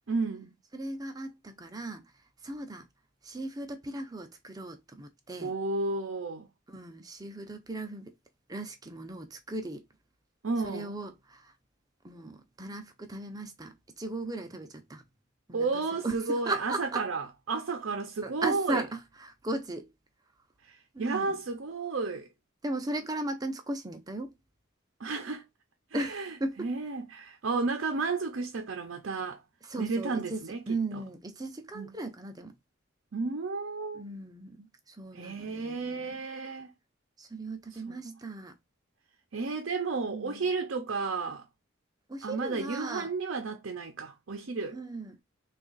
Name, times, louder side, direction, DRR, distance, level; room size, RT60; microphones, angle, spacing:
voice 1, 0.1-0.5 5.4-6.5 10.4-10.9 15.5-18.8 20.6-22.3 25.0-25.4 25.9-29.4 29.8-31.0 31.7-31.9 33.1-34.0 35.1-36.7 37.7-38.2 39.3-41.4 42.2-44.8, right 4 dB, 70° right, 0.6 m, -32 dB
voice 2, 0.7-2.0 2.4-2.9 3.2-5.5 6.7-8.1 8.5-9.8 10.6-11.5 12.0-15.0 15.5-17.0 18.2-18.9 19.2-19.9 20.9-21.4 22.6-24.3 25.9-26.7 29.6-32.5 33.9-36.2 37.2-38.5 40.1-40.5 42.1-43.1 44.7-45.2, right 2 dB, 20° right, 0.5 m, -37 dB
3.5 x 2.4 x 3.9 m
head